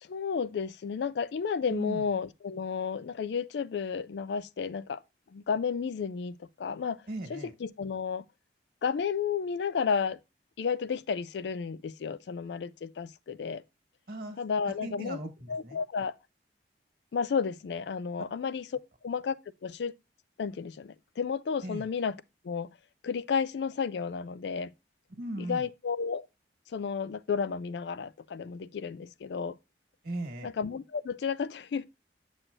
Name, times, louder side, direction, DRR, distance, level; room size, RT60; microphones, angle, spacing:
voice 1, 0.0-5.0 5.3-7.0 7.3-8.2 8.8-10.2 10.6-13.6 14.4-15.2 15.5-16.1 17.1-18.7 19.0-19.3 19.6-20.0 20.4-22.2 22.4-22.7 23.0-24.7 25.4-26.3 26.7-29.6 30.4-31.8, left 6 dB, 70° left, 0.4 m, -32 dB
voice 2, 1.7-2.0 7.1-7.5 14.1-14.4 14.8-15.8 21.6-21.9 25.2-25.6 30.0-30.5, right 1 dB, 55° right, 1.6 m, -38 dB
7.5 x 6.2 x 2.4 m
head